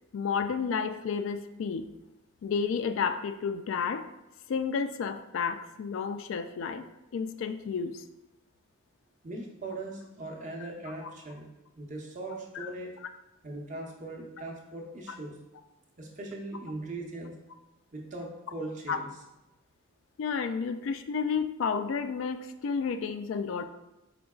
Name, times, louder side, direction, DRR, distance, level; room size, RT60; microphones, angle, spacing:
voice 1, 0.1-1.9 2.4-4.0 4.5-8.0 11.0-11.1 12.5-12.7 18.9-19.0 20.2-23.6, left 6 dB, 65° left, 8 dB, 0.3 m, -31 dB
voice 2, 9.2-11.5 11.8-12.9 13.4-15.4 16.0-17.3 17.9-19.1, right 2 dB, 35° right, 0 dB, 0.7 m, -39 dB
5.1 x 4.5 x 2.3 m, 0.95 s
head